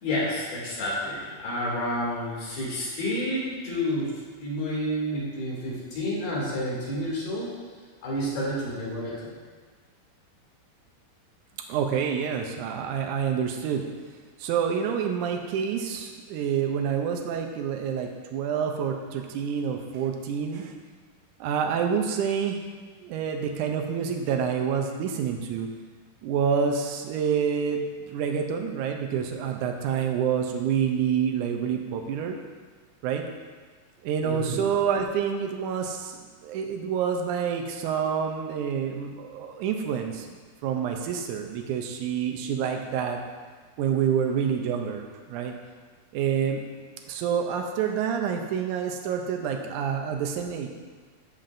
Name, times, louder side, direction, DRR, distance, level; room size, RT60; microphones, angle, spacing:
voice 1, 0.0-4.1 4.4-7.5 8.0-9.3 34.2-34.6, equal, 85° left, -7 dB, 4.5 m, -29 dB
voice 2, 11.7-13.8 14.4-20.7 21.4-22.6 23.0-25.7 26.2-32.4 33.0-33.2 34.0-40.3 40.6-43.2 43.8-45.5 46.1-46.6 47.1-50.7, right 7 dB, 85° right, 3 dB, 1.7 m, -27 dB
14.0 x 5.8 x 2.6 m, 1.5 s
omnidirectional pair, 4.3 m